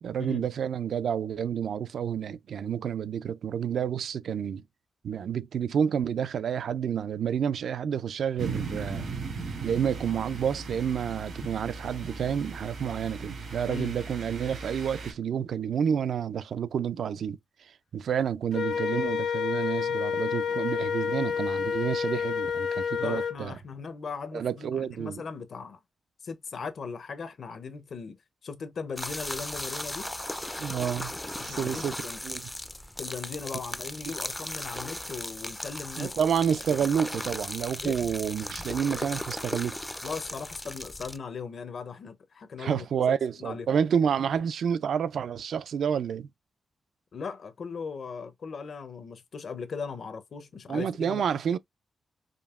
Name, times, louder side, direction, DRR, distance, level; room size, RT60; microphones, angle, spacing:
voice 1, 0.0-4.6 5.0-9.1 9.6-23.5 24.3-25.2 30.6-31.1 31.4-32.5 36.0-39.8 42.6-46.3 50.7-51.6, right 8 dB, 70° right, 0.3 m, -29 dB
sound 1, 8.4-15.1, right 4 dB, 90° right, 2.1 m, -38 dB
Wind instrument woodwind instrument, 18.5-23.4, left 7 dB, 90° left, 0.8 m, -29 dB
voice 2, 22.9-25.8 26.2-28.2 28.4-30.1 31.4-32.2 33.0-36.1 36.7-36.8 37.8-38.0 40.0-43.7 47.1-51.2, left 5 dB, 55° left, 0.6 m, -38 dB
sound 2, 29.0-41.2, left 1 dB, 10° left, 0.3 m, -37 dB
5.1 x 2.7 x 2.3 m
wide cardioid pair, 140°, 0 cm